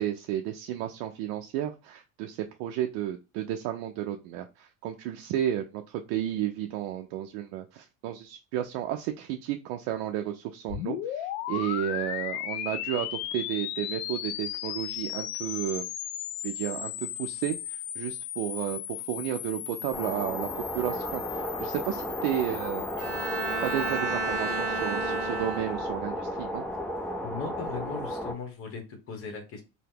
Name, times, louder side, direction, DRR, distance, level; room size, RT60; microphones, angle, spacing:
voice 1, 0.0-15.9 16.4-20.5 20.7-22.9 23.6-26.7, right 11 dB, 65° right, 5 dB, 0.5 m, -32 dB
sound 1, 10.7-24.0, left 11 dB, 70° left, 0.5 m, -36 dB
sound 2, 19.9-28.3, equal, 5° left, 0.4 m, -34 dB
Bowed string instrument, 23.0-26.2, right 3 dB, 40° right, 0.9 m, -32 dB
voice 2, 27.2-29.6, left 4 dB, 40° left, 5 dB, 1.0 m, -38 dB
2.8 x 2.1 x 3.6 m, 0.30 s
supercardioid pair, 120°, 35 cm